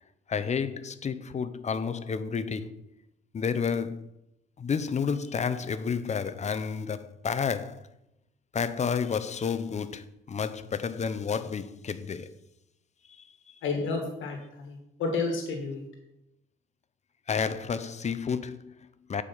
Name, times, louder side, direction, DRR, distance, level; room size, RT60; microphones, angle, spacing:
voice 1, 0.3-2.7 3.3-4.1 4.6-7.9 8.5-12.3 13.1-13.5 17.3-19.2, left 6 dB, 35° left, 0.7 m, -31 dB
voice 2, 13.6-15.9, left 4 dB, 80° left, 1.6 m, -31 dB
8.8 x 4.9 x 5.6 m
cardioid pair, 90°, 20 cm